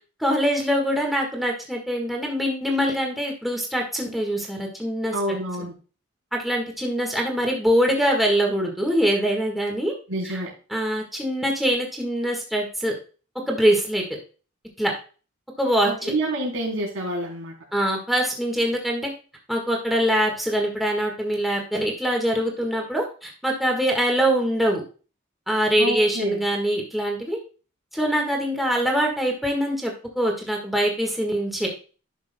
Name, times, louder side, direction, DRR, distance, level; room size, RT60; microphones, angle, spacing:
voice 1, 0.2-5.4 6.3-9.9 10.2-10.4 10.7-12.9 13.5-14.0 14.8-14.9 15.6-16.1 17.7-19.1 19.5-24.8 25.5-27.4 27.9-31.7, equal, ahead, 0 dB, 1.5 m, -23 dB
voice 2, 5.1-5.7 10.1-10.5 15.8-17.5 25.8-26.4, right 1 dB, 75° right, -1 dB, 3.4 m, -28 dB
11.5 x 6.1 x 2.2 m, 0.36 s
head